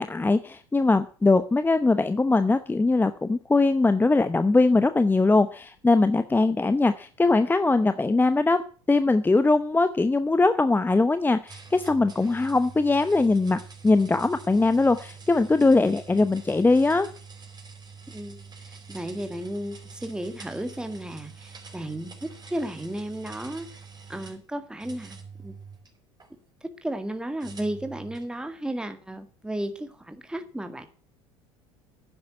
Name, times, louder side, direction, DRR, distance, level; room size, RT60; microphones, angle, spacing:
voice 1, 0.0-8.6 8.9-17.1, left 3 dB, 15° left, 11 dB, 0.8 m, -21 dB
sound 1, 11.5-24.4 24.8-26.3 27.4-28.3, right 5 dB, 25° right, 5.3 m, -45 dB
voice 2, 18.1-23.7 24.1-25.5 26.6-30.9, right 1 dB, 5° right, 8 dB, 1.8 m, -34 dB
11.0 x 9.5 x 7.9 m, 0.41 s
hypercardioid pair, 75°, 15 cm